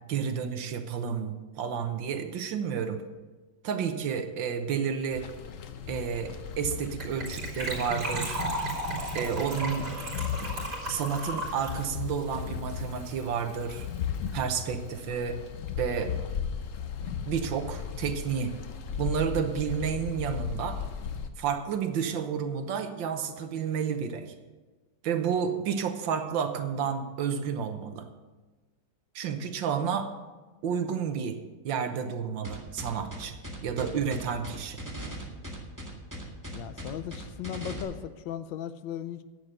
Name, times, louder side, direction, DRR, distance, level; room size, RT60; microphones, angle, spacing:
voice 1, 0.1-3.0 3.6-5.2 5.9-8.4 9.1-9.9 10.4-10.5 10.9-13.9 14.3-15.4 15.8-16.1 17.2-18.5 19.0-20.8 21.4-24.3 25.0-28.1 29.1-30.1 30.6-31.4 31.6-33.3 33.6-34.8, right 7 dB, 75° right, 7 dB, 1.7 m, -31 dB
sound 1, 5.1-21.3, left 7 dB, 60° left, 0.9 m, -37 dB
Gurgling / Trickle dribble / Fill (with liquid), 7.0-13.2 13.5-13.6 13.8-14.0 14.3-14.4, right 1 dB, 55° right, 3.9 m, -35 dB
sound 2, 32.4-37.8, equal, 10° right, 1.7 m, -39 dB
voice 2, 36.5-39.2, left 10 dB, 80° left, 12 dB, 1.3 m, -37 dB
10.5 x 8.2 x 6.7 m, 1.3 s
omnidirectional pair, 2.1 m